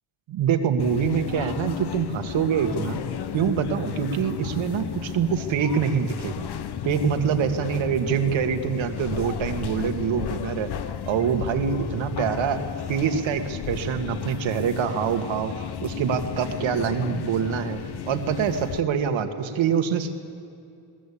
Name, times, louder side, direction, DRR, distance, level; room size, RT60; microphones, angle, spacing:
voice 1, 0.3-3.0 3.3-6.4 6.8-10.7 11.1-12.6 12.9-15.5 15.8-17.8 18.1-20.2, right 7 dB, 80° right, 7 dB, 1.9 m, -25 dB
sound 1, 0.8-18.8, left 9 dB, 60° left, 1.0 m, -33 dB
21.5 x 19.0 x 8.6 m, 2.5 s
cardioid pair, 115°, 45 cm